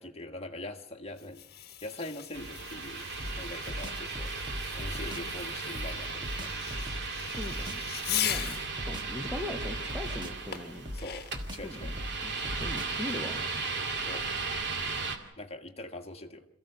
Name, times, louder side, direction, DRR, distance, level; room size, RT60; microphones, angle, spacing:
voice 1, 0.0-4.3 4.7-6.5 10.9-11.9 14.1-14.3 15.4-16.4, left 1 dB, 30° left, 1.6 m, -43 dB
Fireworks, 1.1-8.7 10.5-11.5, left 10 dB, 45° left, 1.4 m, -39 dB
sound 1, 2.3-15.2, right 4 dB, 55° right, 2.4 m, -36 dB
sound 2, 3.2-5.3 5.7-7.9 8.3-10.5 10.8-13.1, equal, 20° right, 1.5 m, -40 dB
voice 2, 7.2-10.9 11.6-11.9 12.2-13.5, left 1 dB, 5° right, 1.4 m, -40 dB
27.0 x 15.5 x 6.8 m
head